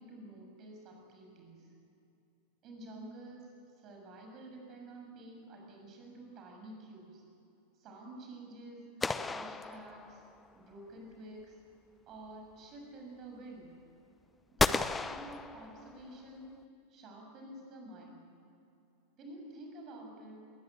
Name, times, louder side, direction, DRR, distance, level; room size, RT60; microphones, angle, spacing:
voice 1, 0.0-1.7 2.6-3.5 3.8-7.2 7.8-10.2 10.5-11.6 12.1-13.8 14.5-16.6 16.9-18.3 19.2-20.6, right 1 dB, 35° right, 1 dB, 6.7 m, -50 dB
sound 1, 9.0-10.5 14.6-16.2, left 4 dB, 10° left, 0.7 m, -34 dB
21.0 x 19.5 x 9.1 m, 2.7 s
figure-of-eight pair, 90°, 0 cm